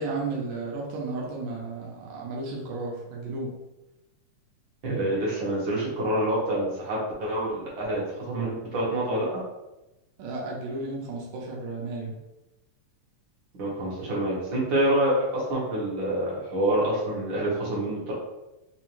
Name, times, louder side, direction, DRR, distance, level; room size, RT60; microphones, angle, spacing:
voice 1, 0.0-3.5 10.2-12.1, right 3 dB, 85° right, -3 dB, 2.1 m, -33 dB
voice 2, 4.8-9.3 13.6-18.1, right 1 dB, 55° right, -5 dB, 1.4 m, -27 dB
5.2 x 2.1 x 3.0 m, 0.98 s
omnidirectional pair, 3.3 m